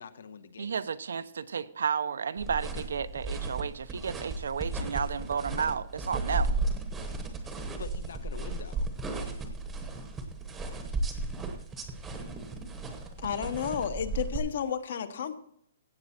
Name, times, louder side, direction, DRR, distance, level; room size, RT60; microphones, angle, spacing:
voice 1, 0.0-0.7 7.5-8.9, left 6 dB, 70° left, 12 dB, 1.1 m, -45 dB
voice 2, 0.6-6.6, right 6 dB, 85° right, 13 dB, 0.8 m, -32 dB
sound 1, 2.4-14.4, right 2 dB, 5° right, 0.9 m, -35 dB
voice 3, 13.2-15.4, left 8 dB, 50° left, 11 dB, 1.1 m, -32 dB
16.0 x 7.9 x 4.4 m, 0.73 s
hypercardioid pair, 180°, 0 cm